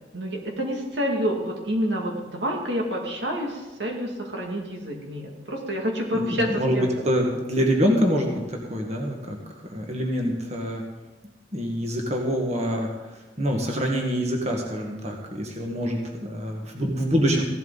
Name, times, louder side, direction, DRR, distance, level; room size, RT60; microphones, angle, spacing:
voice 1, 0.1-6.9, equal, 90° right, 0 dB, 2.3 m, -28 dB
voice 2, 6.1-9.4 9.7-10.8 11.5-12.9 13.4-17.4, equal, 40° right, 1 dB, 1.7 m, -25 dB
16.0 x 12.0 x 4.0 m, 1.2 s
head